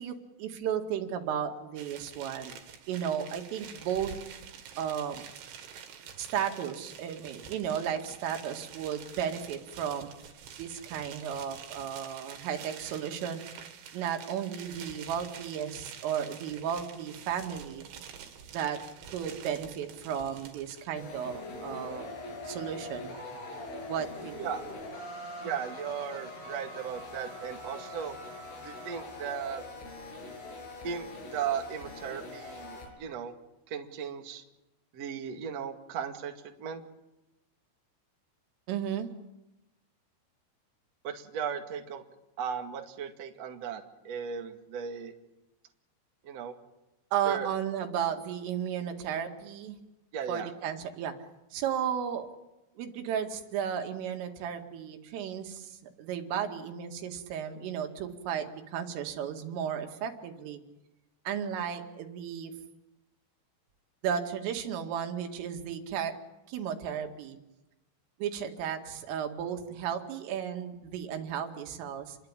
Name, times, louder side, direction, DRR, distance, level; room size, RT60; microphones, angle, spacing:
voice 1, 0.0-2.5 2.9-4.1 4.8-5.2 6.2-10.1 10.6-13.4 13.9-17.9 18.5-18.8 19.1-22.1 22.4-23.2 23.9-24.3 38.7-39.1 47.1-49.8 50.3-51.1 51.5-52.3 52.8-60.6 61.3-62.5 64.0-66.1 66.5-67.4 68.2-72.2, right 8 dB, 85° right, 5 dB, 4.7 m, -34 dB
sound 1, 1.8-20.9, right 8 dB, 70° right, 4.5 m, -47 dB
sound 2, 21.0-32.9, left 2 dB, 80° left, 9.0 m, -42 dB
voice 2, 25.4-28.2 28.6-29.6 30.8-31.1 31.3-33.3 33.7-34.4 34.9-36.3 36.6-36.8 41.0-42.0 42.4-45.1 46.2-46.5 47.2-47.5 50.1-50.5, right 7 dB, 45° right, 4 dB, 2.3 m, -36 dB
29.5 x 22.0 x 9.0 m, 0.97 s
omnidirectional pair, 5.6 m